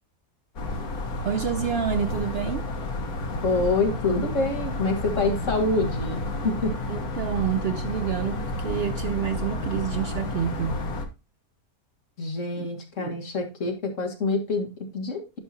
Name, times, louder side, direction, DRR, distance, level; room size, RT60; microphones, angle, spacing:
sound 1, 0.6-11.1, left 2 dB, 80° left, 1.7 m, -31 dB
voice 1, 1.2-2.7 6.9-10.8 12.6-12.7 13.0-13.2, right 9 dB, 70° right, 0.5 m, -28 dB
voice 2, 3.4-6.8 12.2-15.2, left 3 dB, 60° left, 2.1 m, -26 dB
11.0 x 5.7 x 2.7 m
omnidirectional pair, 1.5 m